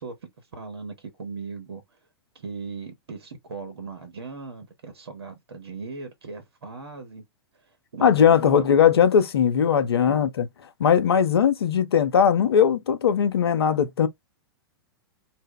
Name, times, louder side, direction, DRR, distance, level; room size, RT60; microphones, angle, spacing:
voice 1, 0.0-1.8 2.3-7.2 7.9-8.9 10.1-10.2, right 4 dB, 75° right, 0.7 m, -38 dB
voice 2, 8.0-10.5 10.8-14.1, left 8 dB, 75° left, 0.5 m, -19 dB
2.0 x 2.0 x 3.7 m
figure-of-eight pair, 105°, 13 cm